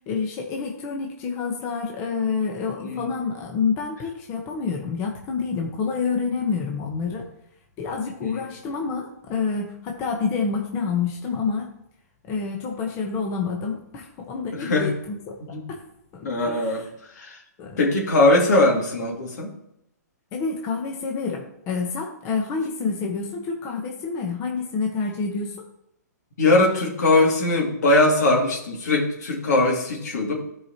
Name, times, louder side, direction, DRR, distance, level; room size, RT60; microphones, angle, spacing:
voice 1, 0.1-7.3 7.8-11.7 12.3-15.8 16.1-16.9 17.6-17.8 20.3-25.6, left 5 dB, 25° left, 1 dB, 1.1 m, -28 dB
voice 2, 14.5-14.9 15.5-15.6 16.2-16.8 17.2-17.4 17.8-19.5 26.4-30.4, left 2 dB, 70° left, 0 dB, 2.4 m, -20 dB
13.0 x 4.9 x 3.0 m, 0.79 s
hypercardioid pair, 150°, 9 cm